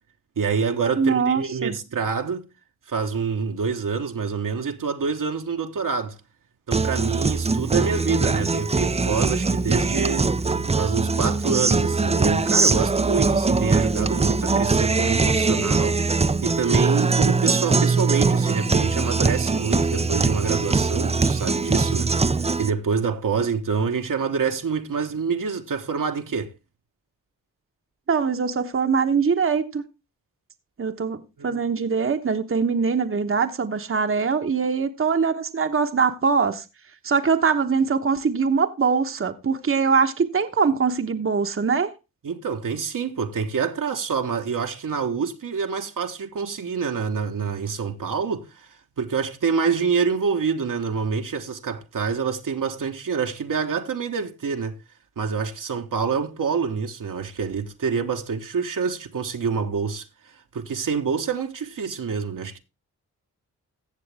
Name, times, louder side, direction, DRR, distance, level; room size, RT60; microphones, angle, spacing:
voice 1, 0.4-2.5 2.9-6.2 6.7-10.3 10.6-16.0 16.4-26.5 31.4-31.6 42.2-48.7 49.0-54.8 55.2-60.1 60.5-62.6, right 5 dB, 55° right, 1.2 m, -26 dB
voice 2, 1.0-1.8 28.1-29.8 30.8-36.6 37.0-41.9, right 5 dB, 35° right, 1.1 m, -22 dB
Guitar, 6.7-22.7, right 4 dB, 15° right, 0.6 m, -22 dB
15.5 x 6.9 x 3.4 m
supercardioid pair, 45°, 38 cm